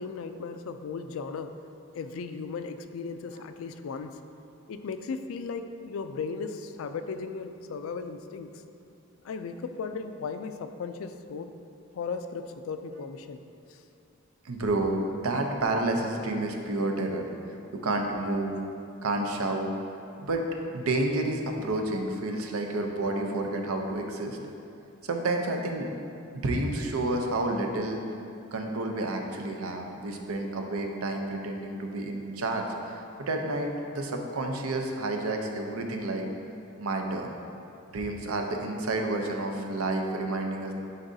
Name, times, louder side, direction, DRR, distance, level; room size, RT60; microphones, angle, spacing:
voice 1, 0.0-1.5 1.9-4.2 4.7-8.5 9.2-11.5 11.9-13.4 13.7-13.8, left 5 dB, 70° left, 9 dB, 0.3 m, -36 dB
voice 2, 14.4-17.3 17.7-18.6 19.0-19.7 20.2-20.4 20.7-24.4 25.0-25.9 26.4-28.1 28.5-36.3 36.8-37.3 37.9-40.7, right 2 dB, 85° right, 3 dB, 0.6 m, -30 dB
9.6 x 4.0 x 2.7 m, 2.6 s
head